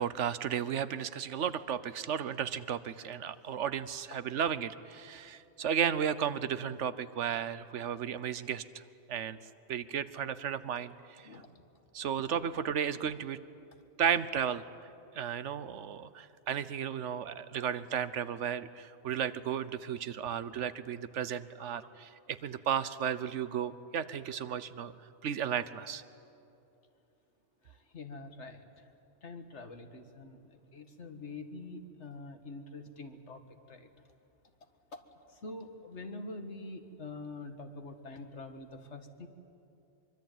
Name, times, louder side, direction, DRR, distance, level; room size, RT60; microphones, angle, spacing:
voice 1, 0.0-8.6 9.1-9.4 9.7-11.3 11.9-13.4 14.0-14.6 15.1-24.9 25.2-26.0, right 8 dB, 80° right, 14 dB, 1.2 m, -34 dB
voice 2, 27.6-28.7 29.2-33.4 33.7-33.9 34.9-35.0 35.3-39.3, left 2 dB, 75° left, 7 dB, 2.0 m, -45 dB
24.0 x 24.0 x 9.2 m, 2.7 s
omnidirectional pair, 1.2 m